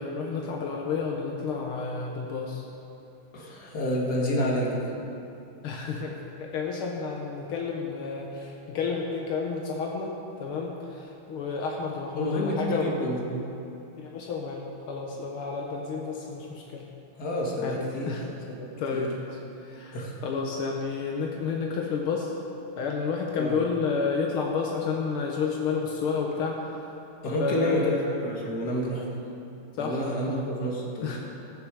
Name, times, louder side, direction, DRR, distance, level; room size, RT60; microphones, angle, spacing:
voice 1, 0.0-2.6 5.6-13.0 14.0-16.8 17.6-17.8 18.1-18.3 18.8-19.4 19.6-20.0 20.2-22.3 22.8-26.8 27.4-28.0 29.8-30.0 30.3-30.5 31.0-31.2, left 5 dB, 80° left, 0 dB, 2.0 m, -31 dB
voice 2, 3.3-4.9 12.2-13.5 17.1-19.1 19.9-20.2 23.4-23.6 27.2-29.1 29.8-31.2, equal, 50° left, -3 dB, 2.5 m, -29 dB
21.5 x 7.2 x 4.8 m, 2.8 s
omnidirectional pair, 2.3 m